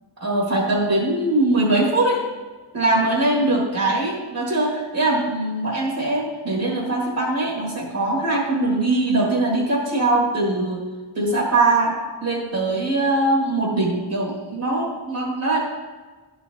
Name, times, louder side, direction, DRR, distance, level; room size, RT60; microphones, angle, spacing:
voice 1, 0.2-2.2 2.7-10.8 11.1-15.6, right 2 dB, 55° right, -2 dB, 1.8 m, -21 dB
11.0 x 6.0 x 2.8 m, 1.3 s
wide cardioid pair, 140°, 42 cm